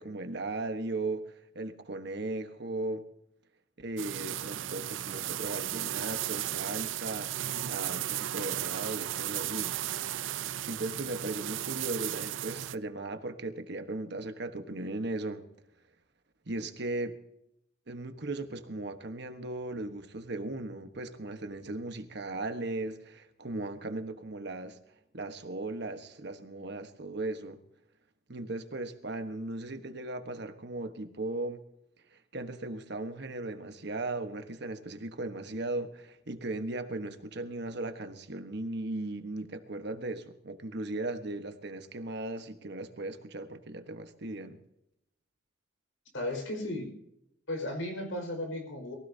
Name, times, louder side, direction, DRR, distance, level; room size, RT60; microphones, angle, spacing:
voice 1, 0.0-3.0 3.8-9.8 10.4-15.5 16.4-17.1 17.9-24.8 25.1-27.6 28.3-31.6 32.1-44.6, right 2 dB, 60° right, 7 dB, 1.3 m, -37 dB
sound 1, 4.0-12.8, right 12 dB, 80° right, 0.5 m, -35 dB
voice 2, 46.1-46.9 47.5-48.9, left 1 dB, 85° left, 3 dB, 5.2 m, -35 dB
23.0 x 16.5 x 2.8 m, 0.80 s
head